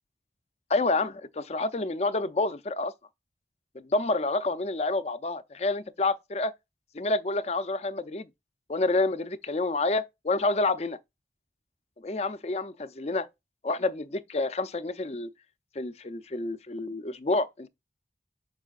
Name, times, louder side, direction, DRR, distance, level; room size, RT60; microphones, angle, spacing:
voice 1, 0.7-2.9 3.7-6.5 6.9-8.3 8.7-11.0 12.0-13.3 13.6-15.3 15.8-17.7, left 2 dB, 35° left, 0.5 m, -28 dB
7.1 x 5.4 x 2.4 m
head